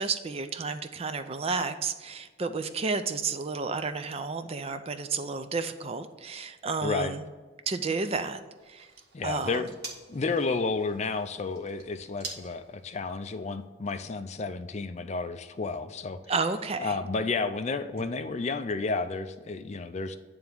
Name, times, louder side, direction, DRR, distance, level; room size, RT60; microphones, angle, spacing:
voice 1, 0.0-7.2 7.7-8.4 8.7-8.9 9.2-9.6 16.3-17.0, right 4 dB, 30° right, 9 dB, 0.4 m, -31 dB
voice 2, 6.8-7.1 9.1-9.7 10.1-16.2 16.8-20.2, left 4 dB, 35° left, 10 dB, 0.4 m, -31 dB
sound 1, 8.6-13.7, right 4 dB, 50° right, 1.4 m, -47 dB
9.0 x 3.5 x 6.7 m, 1.4 s
head